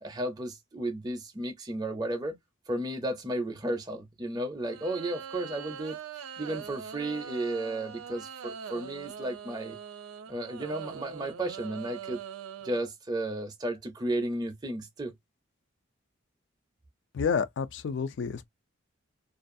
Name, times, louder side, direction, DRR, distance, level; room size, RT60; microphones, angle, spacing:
voice 1, 0.0-2.4 2.7-6.0 6.4-9.8 10.3-12.2 12.6-15.1, right 1 dB, 20° right, 0.4 m, -33 dB
sound 1, 4.6-12.8, right 7 dB, 85° right, 0.4 m, -42 dB
voice 2, 17.1-18.5, left 6 dB, 60° left, 0.3 m, -29 dB
2.4 x 2.3 x 2.6 m
head